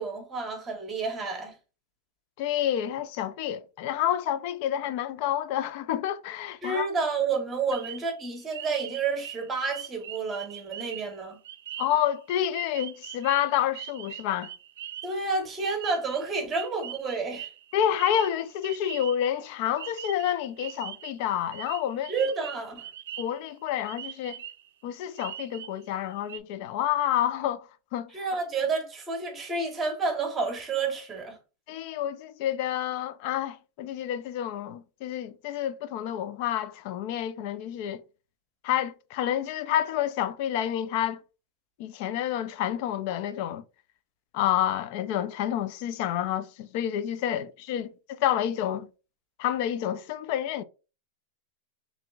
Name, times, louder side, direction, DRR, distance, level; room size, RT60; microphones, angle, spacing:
voice 1, 0.0-1.5 6.6-11.4 15.0-17.5 22.1-22.9 28.1-31.4, right 4 dB, 15° right, 1.0 m, -30 dB
voice 2, 2.4-6.9 11.8-14.5 17.7-22.1 23.2-24.4 24.8-28.1 31.7-38.0 38.6-41.2 41.8-43.6 44.3-48.9 49.4-50.6, left 11 dB, 50° left, 0.3 m, -29 dB
spring peepers, 7.7-19.5 19.8-21.1 21.5-23.5 23.8-24.7 25.2-25.8 26.1-26.4, right 11 dB, 80° right, 0.4 m, -42 dB
5.8 x 2.6 x 2.3 m
supercardioid pair, 155°, 0 cm